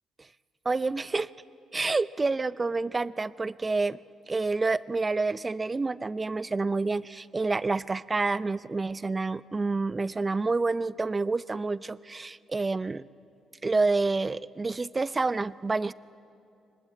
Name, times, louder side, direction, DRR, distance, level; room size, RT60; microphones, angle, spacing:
voice 1, 0.6-1.3 1.7-4.0 4.3-13.0 13.6-15.9, right 3 dB, 25° right, 17 dB, 0.5 m, -28 dB
24.0 x 20.0 x 8.3 m, 2.6 s
cardioid pair, 90°, 0 cm